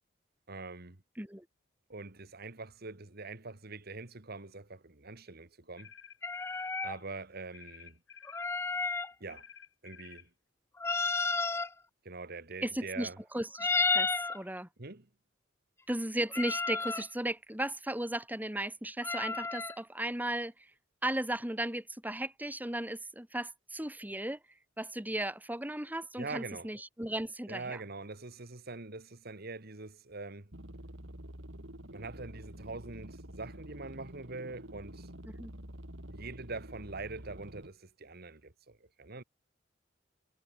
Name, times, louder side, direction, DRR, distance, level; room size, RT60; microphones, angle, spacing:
voice 1, 0.5-1.0 1.9-5.9 6.8-8.0 9.2-9.4 9.8-10.3 12.1-13.2 14.8-15.1 26.2-26.7 27.5-30.5 31.9-35.1 36.1-39.2, right 3 dB, 55° right, 2.0 m, -44 dB
sound 1, 5.8-6.8 7.5-8.5 9.3-10.3, left 8 dB, 75° left, 4.2 m, -53 dB
sound 2, 6.2-7.0 8.3-9.1 10.8-11.7 13.6-14.4 16.3-17.1 19.0-19.8, left 4 dB, 15° left, 0.3 m, -32 dB
voice 2, 12.6-14.7 15.9-20.5 21.0-24.4 24.8-27.8 35.2-35.5, right 1 dB, 10° right, 2.7 m, -36 dB
sound 3, 30.5-37.7, right 1 dB, 75° right, 4.9 m, -48 dB
head